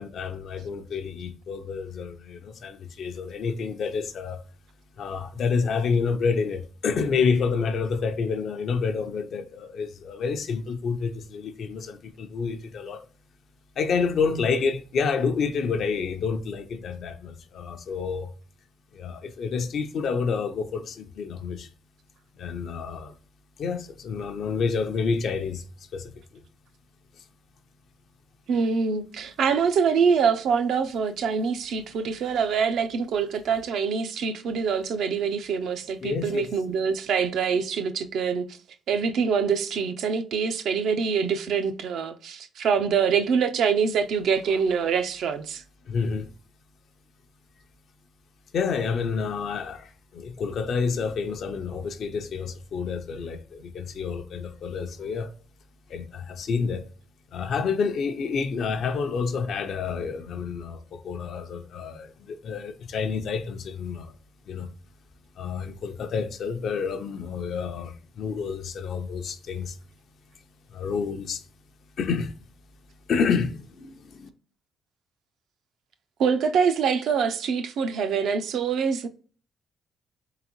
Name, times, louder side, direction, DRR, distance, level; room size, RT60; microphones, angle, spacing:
voice 1, 0.0-4.4 5.0-13.0 13.8-18.3 18.9-21.7 22.4-23.1 23.6-25.6 25.9-26.1 36.0-36.5 45.9-46.3 48.5-55.3 55.9-56.8 57.3-64.1 64.5-64.7 65.4-69.8 70.7-71.4 72.0-72.3 73.1-74.3, left 5 dB, 65° left, 0.5 m, -29 dB
voice 2, 28.5-38.4 38.9-45.6 76.2-79.1, right 6 dB, 75° right, 0.4 m, -25 dB
3.8 x 3.4 x 3.0 m
cardioid pair, 90°, 0 cm